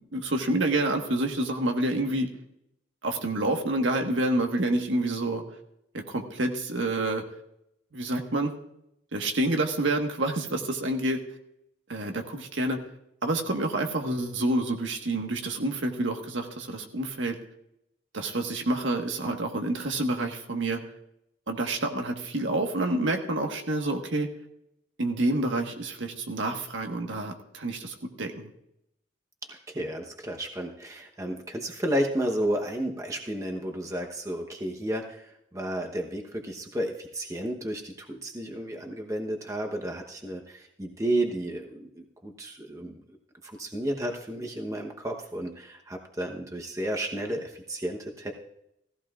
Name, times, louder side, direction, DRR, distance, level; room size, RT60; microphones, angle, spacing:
voice 1, 0.0-2.3 3.0-5.4 5.9-7.2 7.9-8.5 9.1-11.2 11.9-12.8 13.2-17.4 18.1-20.8 21.5-24.3 25.0-28.5, right 2 dB, 85° right, 3 dB, 1.5 m, -28 dB
voice 2, 29.5-43.2 43.4-48.3, right 1 dB, 15° right, 2 dB, 1.0 m, -32 dB
16.5 x 15.0 x 2.5 m, 0.80 s
head